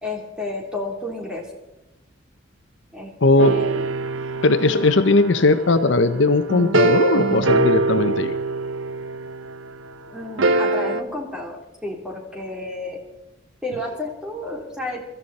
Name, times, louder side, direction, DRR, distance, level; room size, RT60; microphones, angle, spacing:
voice 1, 0.0-1.4 2.9-3.1 3.4-3.9 4.7-4.9 10.1-13.0 13.6-15.1, left 2 dB, 5° right, 0 dB, 3.4 m, -31 dB
voice 2, 3.2-3.7 4.4-8.4, left 2 dB, 65° left, 10 dB, 0.8 m, -18 dB
sound 1, 3.4-9.6 10.4-11.0, right 3 dB, 75° right, 0.9 m, -23 dB
24.0 x 14.0 x 4.2 m, 0.97 s
head